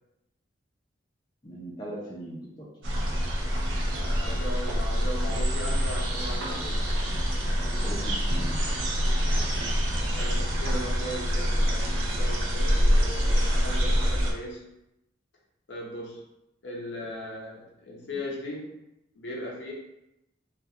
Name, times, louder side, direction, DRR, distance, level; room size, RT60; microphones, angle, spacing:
voice 1, 1.4-2.7 7.8-8.6, right 1 dB, 20° left, -6 dB, 0.5 m, -39 dB
sound 1, 2.8-14.3, equal, 85° right, 0.5 m, -26 dB
voice 2, 3.9-6.9 10.1-14.7 15.7-16.3 16.6-18.7 19.2-19.7, left 1 dB, 70° left, -2 dB, 0.6 m, -38 dB
2.3 x 2.2 x 2.7 m, 0.89 s
head